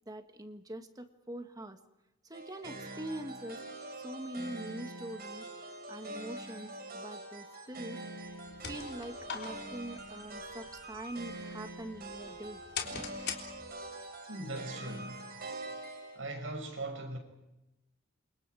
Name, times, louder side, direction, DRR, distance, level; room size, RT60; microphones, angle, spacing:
voice 1, 0.1-1.8 2.2-3.6 4.0-8.0 8.6-12.6, right 1 dB, 20° right, 1.6 m, -43 dB
sound 1, 2.3-16.2, right 2 dB, 50° right, 5.4 m, -44 dB
sound 2, 8.3-14.0, left 6 dB, 55° left, 3.5 m, -44 dB
voice 2, 14.3-15.2 16.1-17.2, right 2 dB, 80° right, 6.7 m, -39 dB
29.0 x 26.5 x 4.9 m
head